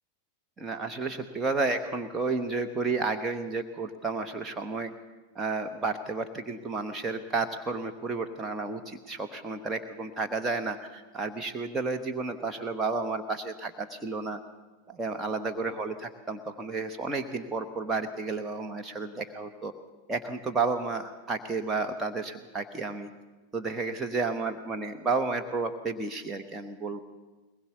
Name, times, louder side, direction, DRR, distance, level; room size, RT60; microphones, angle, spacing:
voice 1, 0.6-4.9 5.3-14.4 14.9-19.7 20.1-23.1 23.5-27.0, right 3 dB, 15° right, 4 dB, 1.2 m, -32 dB
21.5 x 20.5 x 7.0 m, 1.2 s
figure-of-eight pair, 90°, 0 cm